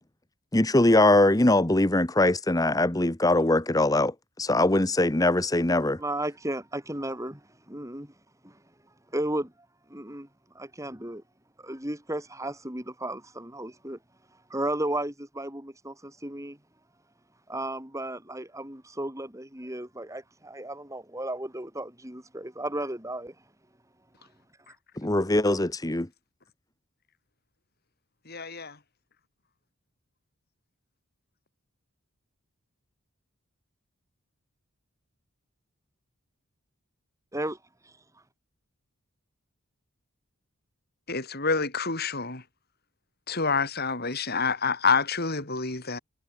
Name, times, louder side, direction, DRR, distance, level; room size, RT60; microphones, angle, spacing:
voice 1, 0.5-4.1 4.4-6.0 25.0-26.1, left 2 dB, 15° left, 1.1 m, -22 dB
voice 2, 6.0-8.1 8.4-8.6 9.1-9.5 9.9-10.3 10.5-11.2 11.6-14.0 14.5-16.6 17.5-23.4 37.3-37.6, right 1 dB, 15° right, 7.2 m, -34 dB
voice 3, 28.3-28.7 41.1-42.4 43.3-46.0, left 4 dB, 45° left, 5.6 m, -27 dB
head